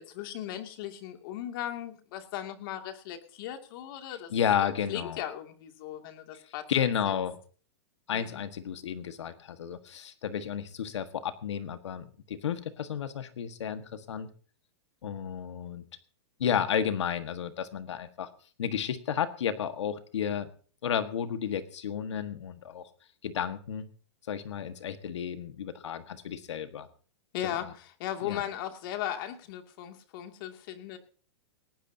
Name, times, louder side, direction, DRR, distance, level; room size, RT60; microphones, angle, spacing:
voice 1, 0.0-4.3 4.6-7.2 8.1-8.4 27.3-31.0, left 11 dB, 50° left, 5 dB, 2.5 m, -37 dB
voice 2, 4.3-5.2 6.7-7.4 8.1-14.3 15.0-15.8 16.4-18.3 18.6-20.5 20.8-22.9 23.2-23.9 24.3-26.9 27.4-27.6 28.2-28.4, left 8 dB, 85° left, 10 dB, 1.6 m, -32 dB
18.5 x 18.5 x 2.8 m, 0.41 s
hypercardioid pair, 145°, 15 cm